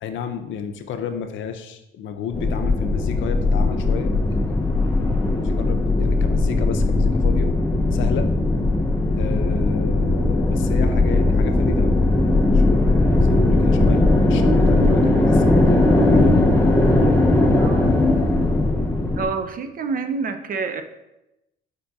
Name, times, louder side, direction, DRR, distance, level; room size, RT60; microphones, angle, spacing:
voice 1, 0.0-4.9 5.4-7.5 7.9-8.3 9.2-12.0 12.4-12.9 13.2-16.9 18.4-18.6, left 7 dB, 75° left, 7 dB, 0.5 m, -32 dB
sound 1, 2.3-19.2, left 2 dB, 10° left, 0.5 m, -18 dB
voice 2, 17.6-18.0 19.2-20.8, right 4 dB, 45° right, 8 dB, 0.4 m, -27 dB
5.1 x 3.9 x 2.3 m, 0.92 s
cardioid pair, 90°, 20 cm